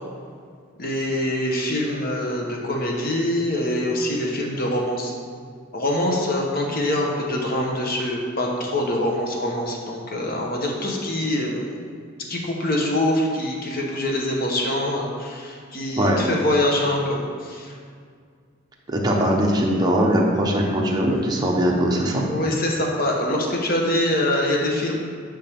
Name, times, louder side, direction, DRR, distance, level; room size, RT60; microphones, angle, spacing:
voice 1, 0.8-5.1 5.7-11.7 12.3-17.8 22.2-25.0, left 1 dB, 50° left, -1 dB, 1.2 m, -24 dB
voice 2, 18.9-22.3, equal, 20° right, -1 dB, 1.0 m, -20 dB
10.0 x 5.5 x 3.7 m, 2.1 s
head